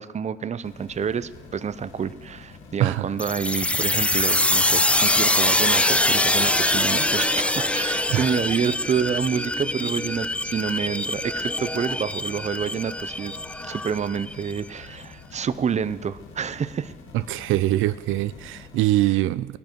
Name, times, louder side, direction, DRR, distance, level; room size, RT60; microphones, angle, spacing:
voice 1, 0.0-13.3 13.7-16.9, right 7 dB, 35° right, 16 dB, 0.6 m, -28 dB
sound 1, 0.6-19.0, left 4 dB, 80° left, 2.0 m, -46 dB
sound 2, 3.2-14.6, left 1 dB, 5° left, 0.4 m, -24 dB
voice 2, 17.1-19.6, right 15 dB, 85° right, 15 dB, 0.4 m, -23 dB
18.0 x 12.5 x 4.6 m, 1.3 s
cardioid pair, 90°, 20 cm